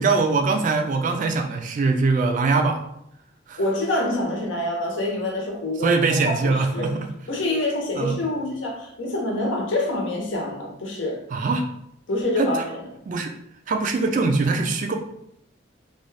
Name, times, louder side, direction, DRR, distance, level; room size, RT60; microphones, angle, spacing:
voice 1, 0.0-2.8 3.5-3.6 5.8-7.1 8.0-8.2 11.3-11.6 12.4-12.6 13.1-13.3 13.7-14.9, right 3 dB, 40° right, 5 dB, 0.3 m, -22 dB
voice 2, 3.6-6.9 7.3-11.2 12.1-12.8, left 1 dB, 85° left, -1 dB, 0.8 m, -26 dB
2.5 x 2.3 x 3.2 m, 0.76 s
head